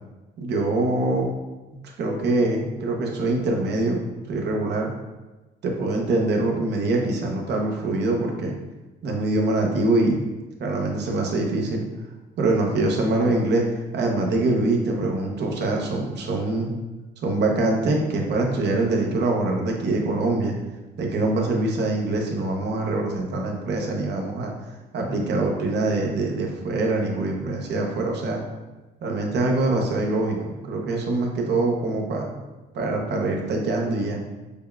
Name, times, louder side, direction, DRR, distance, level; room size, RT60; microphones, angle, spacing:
voice 1, 0.4-1.3 2.0-4.0 4.3-4.9 5.6-8.5 9.0-10.2 10.6-11.8 12.4-16.7 17.2-20.5 21.0-24.5 24.9-28.4 29.0-32.3 32.7-34.2, right 2 dB, 65° right, 1 dB, 0.8 m, -24 dB
6.7 x 2.3 x 2.3 m, 1.2 s
cardioid pair, 105°, 19 cm